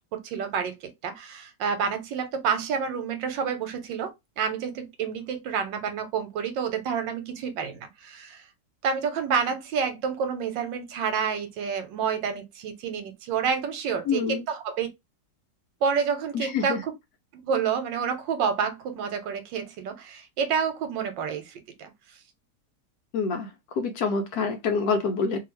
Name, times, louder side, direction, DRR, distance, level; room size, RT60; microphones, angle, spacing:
voice 1, 0.1-8.4 8.8-14.9 15.8-16.9 17.3-21.9, right 6 dB, 85° right, 1.4 m, -29 dB
voice 2, 14.1-14.5 16.3-16.8 23.1-25.4, left 5 dB, 70° left, 1.0 m, -27 dB
2.7 x 2.7 x 3.0 m
omnidirectional pair, 1.9 m